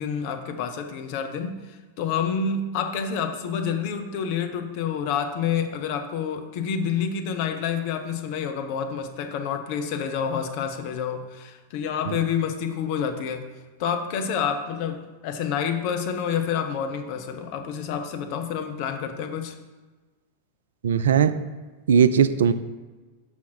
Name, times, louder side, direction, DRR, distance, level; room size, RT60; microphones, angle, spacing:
voice 1, 0.0-13.4 13.8-19.5, left 7 dB, 45° left, 6 dB, 0.7 m, -28 dB
voice 2, 20.8-21.3 21.9-22.5, right 7 dB, 65° right, 13 dB, 0.3 m, -18 dB
6.2 x 5.7 x 4.5 m, 1.3 s
figure-of-eight pair, 90°, 0 cm